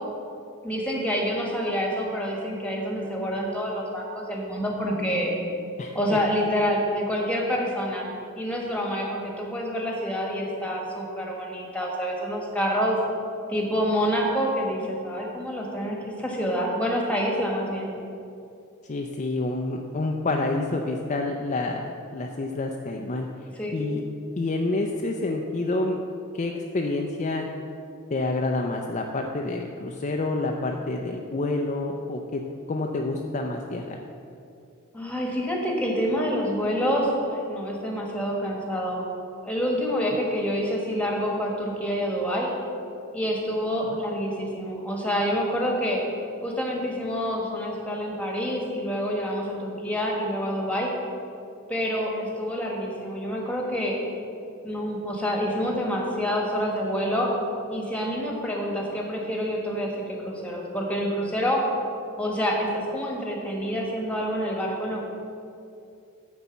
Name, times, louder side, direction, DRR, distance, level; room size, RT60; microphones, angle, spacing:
voice 1, 0.6-5.3 5.9-8.0 8.4-13.0 13.5-17.9 23.5-23.7 34.9-39.0 39.4-42.5 43.1-46.0 46.4-50.9 51.7-53.9 54.6-57.3 57.7-61.6 62.2-65.0, equal, 5° left, -1 dB, 1.3 m, -27 dB
voice 2, 5.8-6.2 18.8-23.3 23.7-24.0 24.4-26.0 26.3-27.5 28.1-32.4 32.7-34.0 43.8-44.0, left 2 dB, 35° left, 2 dB, 0.4 m, -28 dB
9.8 x 4.1 x 7.0 m, 2.6 s
head